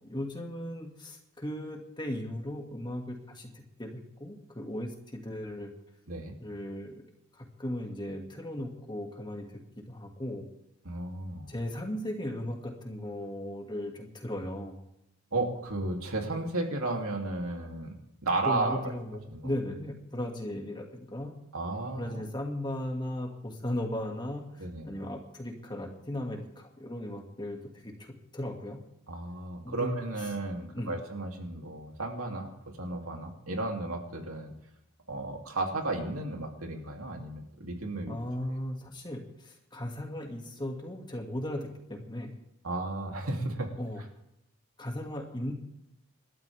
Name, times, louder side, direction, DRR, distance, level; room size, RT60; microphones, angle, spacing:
voice 1, 0.0-3.5 3.8-5.7 6.4-7.0 7.3-10.4 11.5-14.8 18.4-21.3 22.0-28.8 29.6-30.0 30.7-31.0 38.1-42.3 43.8-44.0 44.8-45.5, left 1 dB, 20° left, 1 dB, 2.3 m, -37 dB
voice 2, 10.8-11.5 15.3-17.9 18.2-18.9 19.3-19.5 21.5-22.2 24.6-24.9 29.1-34.5 35.1-38.2 42.6-43.7, right 2 dB, 85° right, 2 dB, 3.0 m, -33 dB
27.5 x 12.5 x 3.6 m, 0.82 s
head